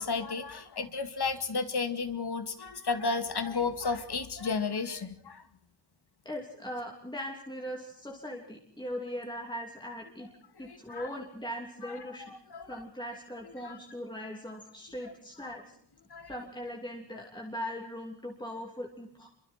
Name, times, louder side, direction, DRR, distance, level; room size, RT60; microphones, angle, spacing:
voice 1, 0.0-5.4 10.7-11.1 11.8-12.0 12.3-12.8 13.6-13.8 15.4-15.5 16.1-16.3, left 4 dB, 60° left, 9 dB, 2.3 m, -33 dB
voice 2, 6.2-10.3 10.6-12.3 12.6-15.8 16.3-19.3, equal, 10° left, 0 dB, 3.0 m, -40 dB
29.5 x 24.5 x 4.5 m, 0.67 s
wide cardioid pair, 145°, 44 cm